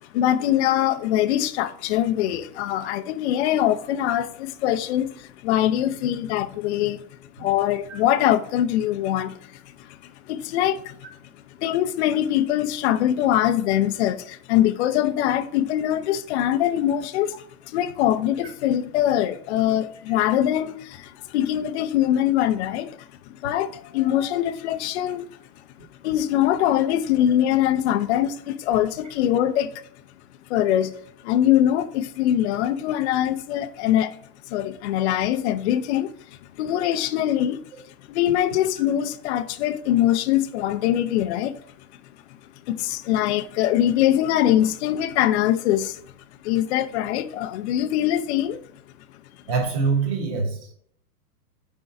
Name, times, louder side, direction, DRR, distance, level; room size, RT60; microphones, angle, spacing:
voice 1, 0.0-7.0 7.4-11.0 11.5-17.4 17.6-25.3 26.0-29.8 30.5-30.9 31.2-34.2 34.5-36.1 36.4-41.6 42.7-46.0 46.4-48.6, left 12 dB, 45° left, 0.5 m, -23 dB
voice 2, 49.5-50.7, right 4 dB, 45° right, 2.5 m, -24 dB
5.4 x 4.6 x 4.7 m
hypercardioid pair, 140°, 48 cm